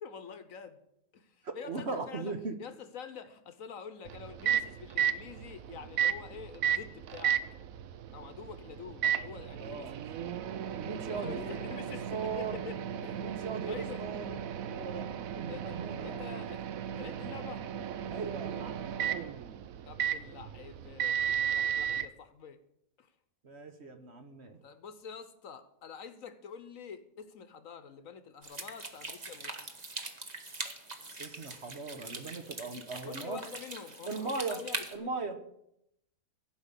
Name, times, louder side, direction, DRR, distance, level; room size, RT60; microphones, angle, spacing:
voice 1, 0.0-0.8 1.1-7.4 8.1-9.9 11.1-13.2 13.6-14.0 15.5-16.7 17.0-17.6 19.8-21.2 21.5-22.6 23.0-23.1 24.6-29.6 33.0-35.1, left 7 dB, 60° left, 11 dB, 1.2 m, -47 dB
voice 2, 1.4-2.5 9.6-9.9 10.7-11.6 12.1-12.6 13.1-14.3 14.7-15.1 15.4-16.2 18.1-19.0 23.4-24.6 31.2-33.4 34.1-34.6 34.9-35.4, right 4 dB, 45° right, 7 dB, 1.2 m, -38 dB
Microwave oven, 4.1-22.1, right 9 dB, 65° right, 1.0 m, -34 dB
sound 1, 28.4-34.9, right 2 dB, 30° right, 1.3 m, -42 dB
16.0 x 5.5 x 8.2 m, 0.79 s
omnidirectional pair, 1.7 m